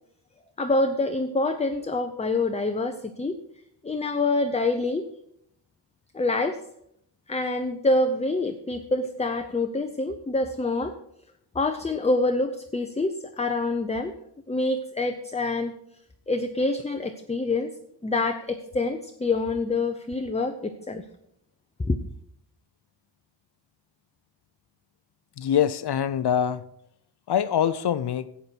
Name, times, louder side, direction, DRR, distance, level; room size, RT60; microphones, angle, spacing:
voice 1, 0.6-3.4 3.8-5.1 6.1-6.6 7.3-10.9 11.5-14.2 14.5-15.7 16.3-17.7 18.0-21.0 21.8-22.0, left 2 dB, 15° left, 6 dB, 0.6 m, -26 dB
voice 2, 25.4-26.7 27.3-28.3, left 9 dB, 60° left, 15 dB, 0.6 m, -24 dB
12.0 x 8.2 x 4.5 m, 0.73 s
wide cardioid pair, 110°, 45 cm